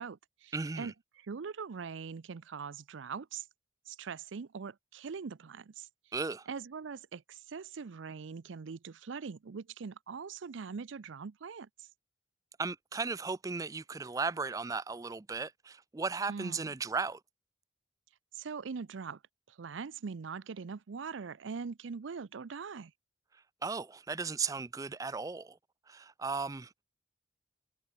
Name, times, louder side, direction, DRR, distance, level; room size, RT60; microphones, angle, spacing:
voice 1, 0.0-3.5 3.9-6.1 6.5-11.9 16.3-16.7 18.3-19.2 19.5-22.9, right 5 dB, 85° right, 0.5 m, -42 dB
voice 2, 0.5-0.9 6.1-6.5 12.6-17.2 23.6-25.6 25.9-26.7, right 4 dB, 20° right, 0.4 m, -36 dB
head